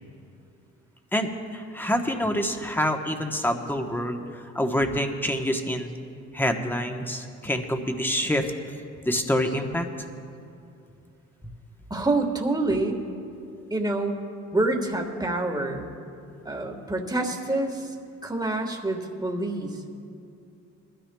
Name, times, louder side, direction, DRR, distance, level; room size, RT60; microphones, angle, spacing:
voice 1, 1.1-5.9 6.3-8.5 9.0-9.9 11.4-11.5, equal, 5° left, 4 dB, 1.1 m, -26 dB
voice 2, 11.9-13.0 13.7-14.2 14.5-15.9 16.4-17.9 18.2-19.9, right 2 dB, 15° right, 2 dB, 1.5 m, -27 dB
21.0 x 13.0 x 2.3 m, 2.6 s
cardioid pair, 90°, 30 cm